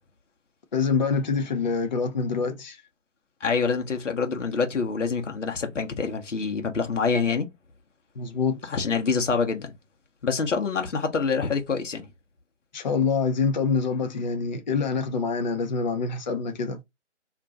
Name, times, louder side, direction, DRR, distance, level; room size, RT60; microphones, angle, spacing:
voice 1, 0.7-2.8 8.2-8.7 12.7-16.8, left 5 dB, 40° left, 0.5 m, -26 dB
voice 2, 3.4-7.5 8.7-9.7 10.2-12.1, left 5 dB, 75° left, 0.9 m, -26 dB
2.5 x 2.2 x 3.8 m
figure-of-eight pair, 145°, 37 cm